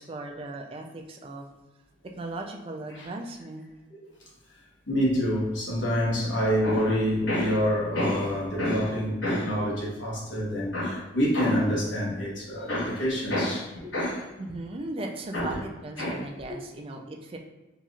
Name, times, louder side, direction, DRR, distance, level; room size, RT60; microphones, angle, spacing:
voice 1, 0.0-1.4 2.2-3.7 14.4-17.4, right 2 dB, 30° right, 0.3 m, -37 dB
voice 2, 4.9-14.3 15.3-15.6 16.0-16.2, equal, 70° left, 1.1 m, -27 dB
4.0 x 2.9 x 2.4 m
head